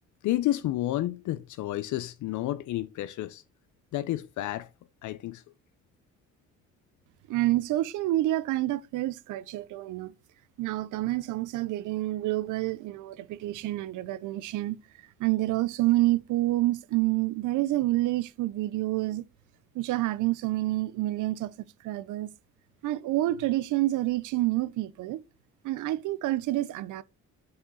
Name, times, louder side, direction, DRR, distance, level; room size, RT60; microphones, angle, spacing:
voice 1, 0.2-3.4 3.9-4.7 5.0-5.4, left 15 dB, 75° left, 0.5 m, -30 dB
voice 2, 7.3-10.1 10.6-14.8 15.2-19.2 19.7-22.3 22.8-25.2 25.6-27.0, right 16 dB, 85° right, 0.6 m, -28 dB
5.6 x 5.5 x 4.0 m
cardioid pair, 90°, 30 cm